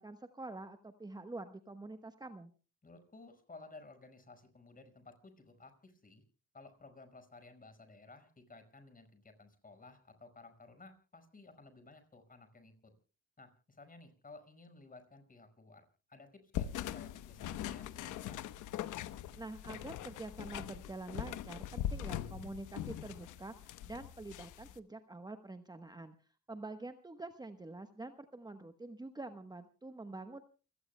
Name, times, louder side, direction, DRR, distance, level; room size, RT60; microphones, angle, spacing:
voice 1, 0.0-2.5 19.4-26.1 26.5-30.4, right 2 dB, 15° right, 8 dB, 1.1 m, -46 dB
voice 2, 2.8-6.2 6.5-12.9 13.4-18.4, left 3 dB, 30° left, 8 dB, 5.2 m, -56 dB
sound 1, 16.5-24.8, left 11 dB, 90° left, 1.0 m, -42 dB
29.0 x 17.0 x 2.2 m, 0.36 s
cardioid pair, 90°, 30 cm